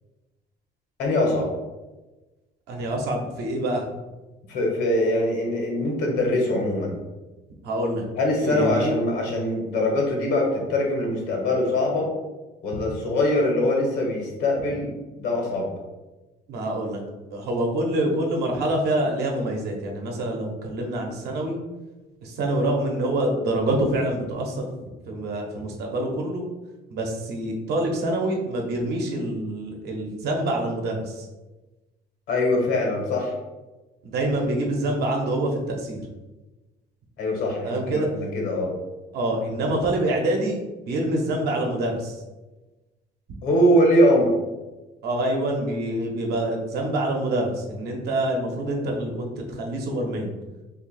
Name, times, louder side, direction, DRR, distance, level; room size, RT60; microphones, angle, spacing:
voice 1, 1.0-1.5 4.5-6.9 8.2-12.1 12.6-14.9 15.2-15.7 32.3-33.3 37.2-38.7 43.4-44.3, left 1 dB, 85° left, 0 dB, 1.2 m, -22 dB
voice 2, 2.7-3.8 7.6-8.0 8.4-8.9 16.5-17.0 17.3-21.6 22.2-24.7 25.1-26.4 26.9-31.3 34.0-36.1 37.6-38.1 39.1-40.6 40.9-42.2 45.0-50.3, right 1 dB, 75° right, 1 dB, 0.9 m, -26 dB
2.7 x 2.6 x 4.0 m, 1.1 s
cardioid pair, 110°, 17 cm